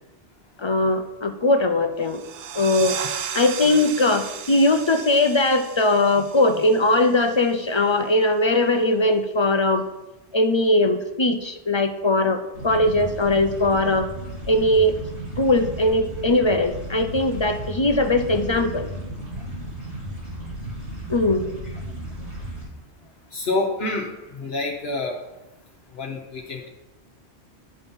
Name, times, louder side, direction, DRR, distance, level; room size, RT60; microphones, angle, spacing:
voice 1, 0.6-2.2 2.5-3.0 3.3-9.9 10.3-14.1 14.5-14.9 15.4-18.9 21.1-21.5, left 2 dB, 40° left, 7 dB, 0.4 m, -20 dB
sound 1, 2.0-7.4, right 8 dB, 65° right, 0.8 m, -35 dB
sound 2, 12.5-22.7, right 1 dB, 80° right, 3.7 m, -34 dB
voice 2, 23.3-25.2 25.9-26.7, left 2 dB, 65° left, -1 dB, 1.2 m, -27 dB
12.0 x 4.2 x 5.3 m, 1.0 s
omnidirectional pair, 1.1 m